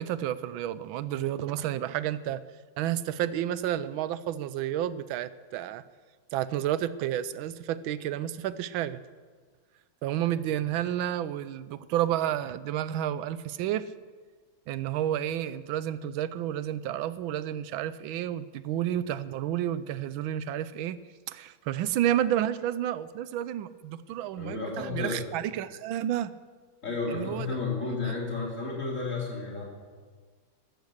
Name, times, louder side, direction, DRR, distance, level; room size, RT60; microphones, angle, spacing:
voice 1, 0.0-2.4 2.8-5.8 6.3-9.0 10.0-13.9 14.7-21.0 21.3-26.3 27.1-27.5 28.0-28.1, right 11 dB, 85° right, 15 dB, 1.4 m, -30 dB
voice 2, 24.4-25.2 26.8-29.6, left 3 dB, 40° left, -3 dB, 4.2 m, -32 dB
15.0 x 13.0 x 6.5 m, 1.5 s
omnidirectional pair, 2.1 m